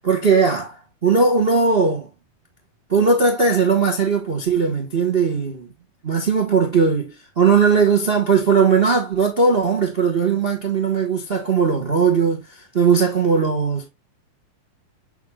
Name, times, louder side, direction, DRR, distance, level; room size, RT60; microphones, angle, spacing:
voice 1, 0.0-2.1 2.9-5.7 6.0-13.9, right 5 dB, 75° right, 0.5 m, -18 dB
8.2 x 3.7 x 3.5 m
omnidirectional pair, 3.8 m